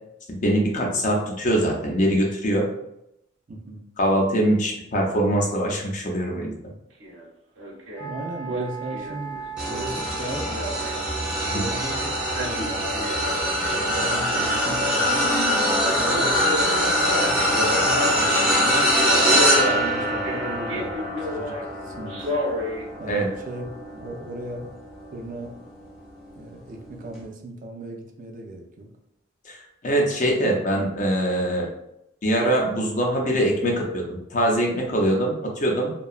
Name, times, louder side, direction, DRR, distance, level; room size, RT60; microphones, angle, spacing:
voice 1, 0.3-2.7 4.0-6.5 11.5-11.7 23.1-23.3 29.4-31.7 32.2-35.9, right 1 dB, 40° left, -1 dB, 0.5 m, -23 dB
voice 2, 3.5-3.8 8.0-10.7 11.5-12.1 12.4-13.2 13.6-15.3 16.0-16.4 16.9-18.9 19.5-22.3 23.0-23.6 23.9-24.7 25.1-25.5 26.3-28.9, right 1 dB, 45° right, 2 dB, 0.4 m, -37 dB
Male speech man speaking, 7.0-7.3 7.6-8.1 8.5-11.7 12.1-13.5 13.7-14.6 15.7-18.1 18.6-18.8 19.2-21.6 22.1-22.8 23.3-23.4, equal, 85° right, 0.9 m, -31 dB
Wind instrument woodwind instrument, 7.9-18.8, right 7 dB, 70° left, 0.8 m, -37 dB
sound 1, 9.6-25.1 25.6-25.9 27.1-27.2, equal, 5° right, 0.6 m, -23 dB
2.7 x 2.2 x 2.3 m, 0.82 s
head